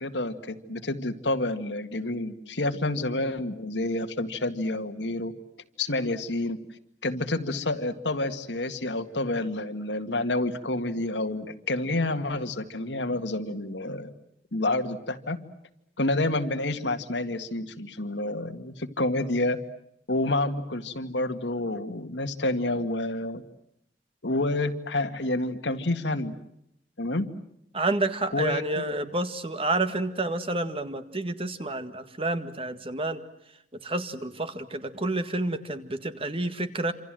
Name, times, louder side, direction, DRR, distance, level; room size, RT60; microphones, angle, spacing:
voice 1, 0.0-5.3 5.8-6.6 7.0-14.1 14.5-15.4 16.0-19.6 20.1-23.4 24.2-26.4 27.0-27.3 28.3-28.9, left 2 dB, 85° left, 7 dB, 2.1 m, -29 dB
voice 2, 27.7-33.2 33.8-36.9, right 2 dB, 30° right, 10 dB, 1.8 m, -29 dB
27.0 x 27.0 x 7.7 m, 0.77 s
head